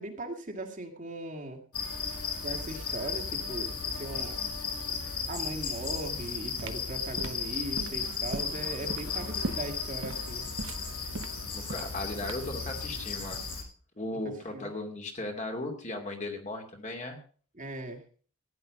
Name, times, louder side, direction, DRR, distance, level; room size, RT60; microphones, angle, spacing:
voice 1, 0.0-1.6 2.4-4.4 4.9-5.0 5.3-10.5 14.1-14.7 17.6-18.0, right 1 dB, 35° right, 3 dB, 2.1 m, -39 dB
sound 1, 1.7-13.6, left 5 dB, 85° left, 7.0 m, -35 dB
sound 2, 6.6-12.6, right 2 dB, 60° right, 1.1 m, -39 dB
voice 2, 11.5-13.5 14.0-17.2, left 2 dB, 30° left, 3 dB, 2.5 m, -37 dB
15.5 x 10.5 x 5.2 m, 0.41 s
head